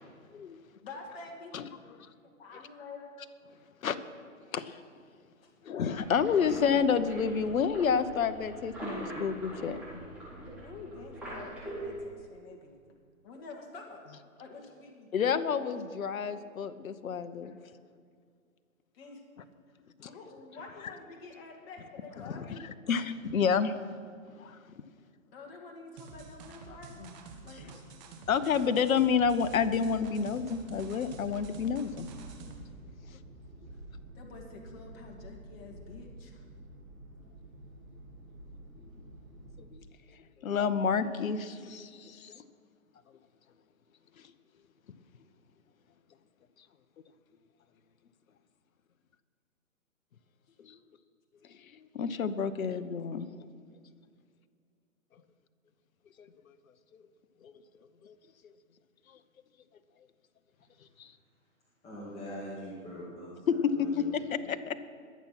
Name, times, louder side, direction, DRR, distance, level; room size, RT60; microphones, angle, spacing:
voice 1, 0.8-1.5 2.0-3.1 5.4-5.5 10.6-12.8 13.2-14.1 14.4-15.1 17.4-17.8 18.9-19.2 20.0-22.6 25.3-27.7 34.1-36.4, left 3 dB, 45° left, 1 dB, 2.3 m, -48 dB
voice 2, 5.6-9.8 15.1-17.5 20.0-20.1 22.2-22.6 22.9-23.7 24.4-24.6 28.3-32.1 39.7-39.8 40.4-42.4 50.6-50.8 51.9-53.3 56.2-56.3 57.4-57.5 58.0-58.1 61.0-61.1 63.6-64.1 64.3-64.8, left 6 dB, 70° left, 11 dB, 1.0 m, -29 dB
sound 1, 5.9-12.0, right 1 dB, 5° right, 4.0 m, -42 dB
sound 2, 26.0-32.7, right 4 dB, 30° right, 1.6 m, -48 dB
sound 3, 30.6-39.7, right 1 dB, 70° right, 4.3 m, -50 dB
voice 3, 61.8-64.3, equal, 15° left, -7 dB, 2.4 m, -43 dB
21.0 x 7.3 x 5.9 m, 2.1 s
hypercardioid pair, 140°, 42 cm